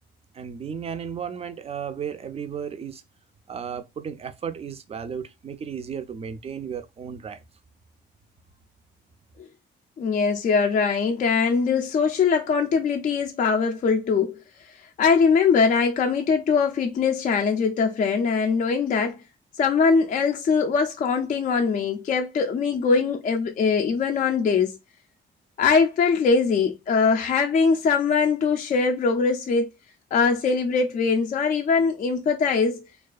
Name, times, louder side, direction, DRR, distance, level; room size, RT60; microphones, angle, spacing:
voice 1, 0.3-3.0 3.5-7.4, right 7 dB, 30° right, 0.4 m, -34 dB
voice 2, 10.0-14.4 15.0-19.2 19.6-24.8 25.6-29.7 30.1-32.8, left 5 dB, 40° left, 0.4 m, -22 dB
2.3 x 2.3 x 2.3 m
cardioid pair, 90°, 20 cm